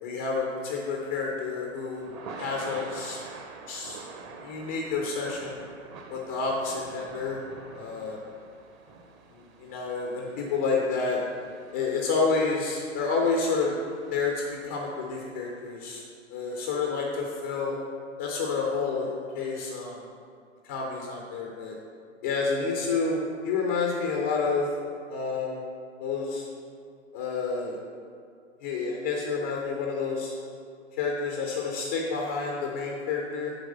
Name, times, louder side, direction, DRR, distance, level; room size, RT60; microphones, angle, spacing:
voice 1, 0.0-2.1 2.4-3.2 3.7-4.0 4.4-5.6 6.1-7.4 7.7-8.2 9.3-11.2 11.7-13.8 14.1-16.0 16.3-17.8 18.2-20.0 20.6-21.8 22.2-24.7 25.1-25.6 26.0-26.5 27.1-27.8 28.6-30.3 30.9-33.6, left 4 dB, 10° left, -1 dB, 0.4 m, -29 dB
Thunder / Rain, 1.1-15.4, right 4 dB, 25° right, 0.7 m, -46 dB
7.9 x 4.6 x 6.6 m, 2.3 s
figure-of-eight pair, 110°, 38 cm